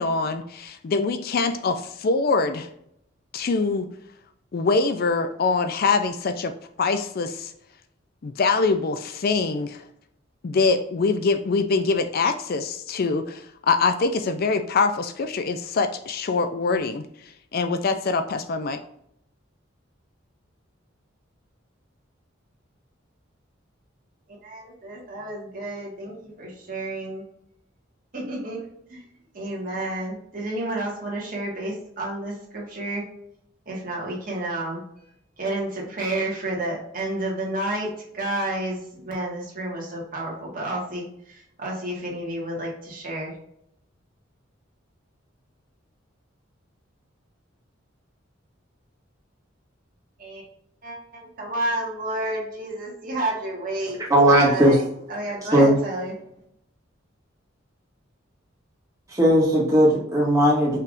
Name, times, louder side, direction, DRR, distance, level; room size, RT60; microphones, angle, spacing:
voice 1, 0.0-2.7 3.3-3.9 4.5-6.5 6.8-7.5 8.2-9.8 10.4-17.0 17.5-18.8, left 4 dB, 50° left, 8 dB, 0.4 m, -24 dB
voice 2, 24.4-27.2 28.1-28.6 28.9-29.0 29.3-33.0 33.6-34.8 35.4-37.9 38.1-38.8 39.0-43.3 50.2-50.4 50.8-51.0 51.4-54.0 54.3-54.8 55.1-56.1, right 1 dB, 45° right, -3 dB, 1.7 m, -30 dB
voice 3, 54.1-54.8 55.5-55.7 59.1-60.8, equal, 20° right, -5 dB, 1.8 m, -17 dB
5.5 x 3.4 x 2.5 m, 0.73 s
head